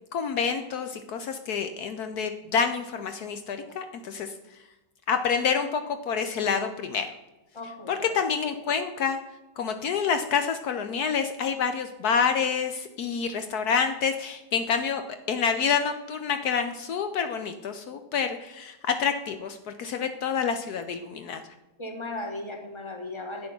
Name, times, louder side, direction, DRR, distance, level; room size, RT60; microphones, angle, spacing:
voice 1, 0.1-4.3 5.1-5.8 6.1-7.1 7.9-9.2 9.6-15.0 15.3-21.4, left 6 dB, 70° left, 8 dB, 1.3 m, -27 dB
voice 2, 7.5-8.1 21.8-23.5, left 2 dB, 20° left, 4 dB, 1.6 m, -36 dB
11.0 x 7.7 x 6.0 m, 1.0 s
omnidirectional pair, 1.8 m